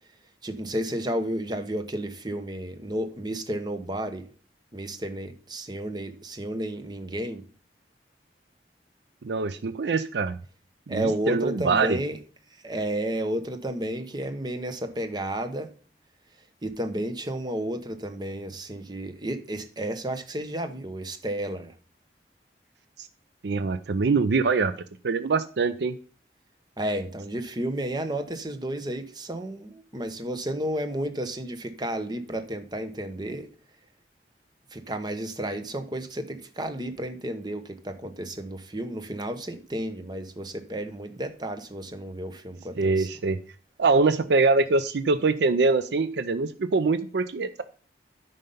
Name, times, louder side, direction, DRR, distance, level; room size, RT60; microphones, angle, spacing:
voice 1, 0.4-4.3 4.7-7.4 10.9-12.2 12.6-15.7 16.6-21.7 26.8-33.5 34.7-43.1, right 1 dB, 25° right, 8 dB, 0.9 m, -32 dB
voice 2, 9.2-10.4 10.9-12.0 23.0-23.1 23.4-24.7 25.0-25.9 42.8-43.4 43.8-47.6, right 4 dB, 75° right, 12 dB, 0.5 m, -24 dB
9.2 x 5.5 x 5.4 m, 0.42 s
head